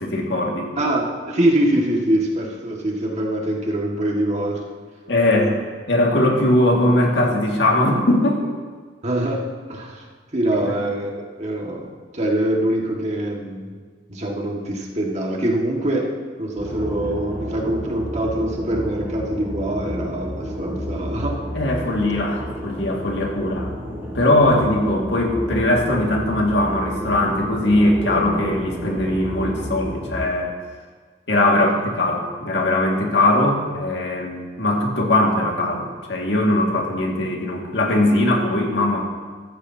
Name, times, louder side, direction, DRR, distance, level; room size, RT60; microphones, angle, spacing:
voice 1, 0.0-0.7 5.1-5.6 5.9-8.4 10.7-10.8 21.5-23.7 24.1-30.5 31.3-39.0, left 1 dB, 80° left, 0 dB, 2.1 m, -20 dB
voice 2, 0.8-4.6 5.4-5.6 9.0-9.4 9.7-10.0 10.3-13.7 14.1-16.1 16.4-21.4 22.0-22.1 31.5-31.7, right 1 dB, 40° right, -1 dB, 1.8 m, -24 dB
sound 1, 16.6-30.3, equal, 10° right, 3.6 m, -30 dB
15.0 x 13.5 x 2.8 m, 1.5 s
head